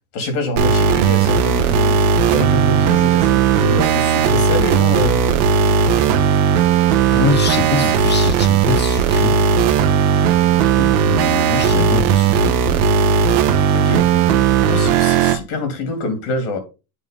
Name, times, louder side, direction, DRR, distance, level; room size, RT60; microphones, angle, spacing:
voice 1, 0.1-2.0 2.3-5.4 7.5-7.9 13.7-14.1 14.7-16.6, left 1 dB, 80° left, 2.8 m, -25 dB
sound 1, 0.6-15.4, right 7 dB, 85° right, 1.0 m, -16 dB
voice 2, 7.1-9.4 10.8-12.9 14.1-14.5, left 5 dB, 25° left, 1.2 m, -24 dB
8.9 x 3.1 x 5.2 m
supercardioid pair, 105°, 43 cm